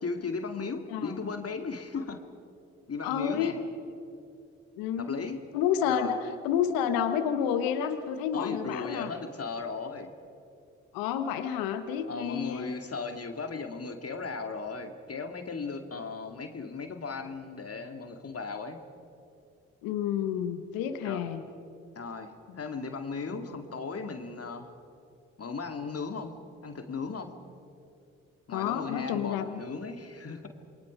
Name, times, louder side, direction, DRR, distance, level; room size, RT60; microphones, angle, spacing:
voice 1, 0.0-2.2 2.9-3.6 5.0-5.5 5.9-6.1 8.3-10.1 12.1-18.8 21.0-21.2 22.0-24.7 25.4-26.3 26.6-27.4 28.5-30.5, left 4 dB, 45° left, 6 dB, 2.2 m, -36 dB
voice 2, 3.0-3.5 4.8-5.2 5.5-9.1 10.9-12.7 19.8-21.4 22.5-22.6 28.5-29.6, left 8 dB, 80° left, 9 dB, 1.2 m, -30 dB
28.0 x 22.5 x 5.2 m, 2.5 s
hypercardioid pair, 40°, 34 cm